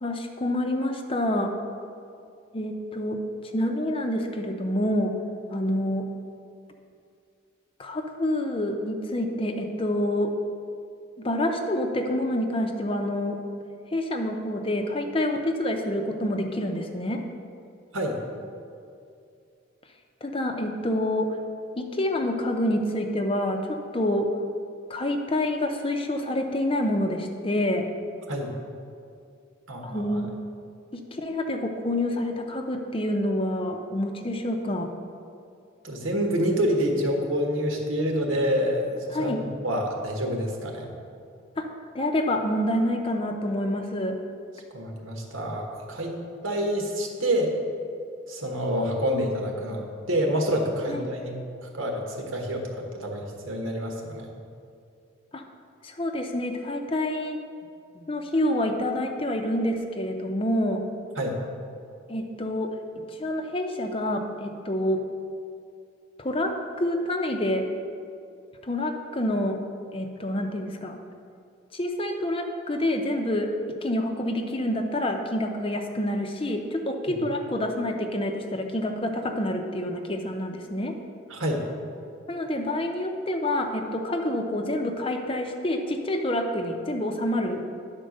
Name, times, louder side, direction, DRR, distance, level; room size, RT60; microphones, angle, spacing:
voice 1, 0.0-1.5 2.5-3.2 3.5-5.2 5.5-6.1 7.8-10.3 11.2-13.4 13.9-17.2 20.2-21.4 21.8-24.3 24.9-27.9 29.8-30.4 30.9-34.9 39.1-39.4 41.6-41.7 41.9-44.2 50.9-51.1 55.3-55.4 55.8-57.4 57.9-60.8 62.1-65.0 66.2-67.7 68.6-69.6 69.9-71.0 71.7-80.9 82.3-87.6, left 1 dB, 25° left, 4 dB, 0.6 m, -27 dB
voice 2, 29.7-30.2 35.8-40.9 44.7-46.2 46.4-47.5 48.3-51.4 51.6-54.3 61.2-61.4 77.1-77.2 81.3-81.6, equal, 85° right, 1 dB, 1.4 m, -27 dB
10.5 x 4.4 x 6.4 m, 2.4 s
head